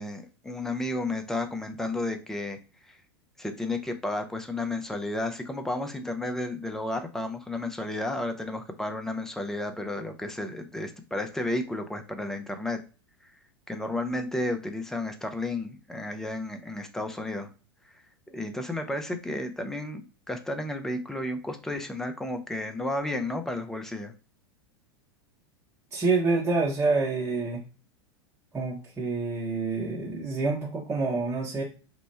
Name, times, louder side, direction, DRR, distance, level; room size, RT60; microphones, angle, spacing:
voice 1, 0.0-2.6 2.8-3.0 3.4-12.8 13.2-13.3 13.7-17.5 18.3-24.1, left 2 dB, 5° left, 6 dB, 0.5 m, -32 dB
voice 2, 25.9-27.6 28.5-31.6, right 3 dB, 15° right, -5 dB, 0.8 m, -27 dB
2.9 x 2.1 x 3.2 m, 0.34 s
figure-of-eight pair, 90°, 14 cm